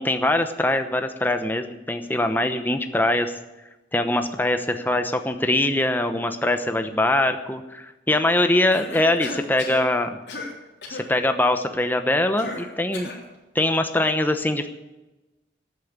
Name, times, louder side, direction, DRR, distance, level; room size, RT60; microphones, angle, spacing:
voice 1, 0.0-3.3 3.9-10.2 10.9-13.1 13.5-14.7, left 1 dB, 10° left, 7 dB, 0.9 m, -22 dB
Cough, 8.7-9.9 10.3-10.5 10.8-11.1 12.4-13.2, left 2 dB, 75° left, 3.4 m, -35 dB
14.0 x 8.8 x 8.2 m, 1.1 s
head